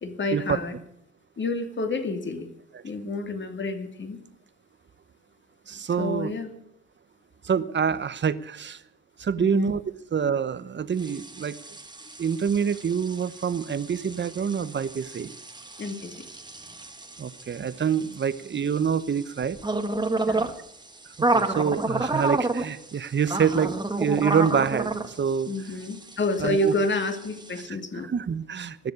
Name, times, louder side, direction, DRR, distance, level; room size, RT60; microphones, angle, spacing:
voice 1, 0.0-0.8 1.4-2.5 2.8-4.2 6.0-6.5 9.4-9.7 15.8-16.3 20.1-20.5 25.5-28.1, left 2 dB, 40° left, 7 dB, 2.6 m, -29 dB
voice 2, 5.7-6.3 7.4-8.8 9.2-9.8 10.1-11.6 12.2-15.3 17.2-19.6 21.2-25.5 26.4-26.7 27.7-27.8 28.0-28.9, right 7 dB, 40° right, 15 dB, 1.0 m, -26 dB
sound 1, 11.0-27.6, right 2 dB, 15° right, 1.7 m, -31 dB
20.0 x 7.4 x 9.6 m, 0.76 s
cardioid pair, 90°, 30 cm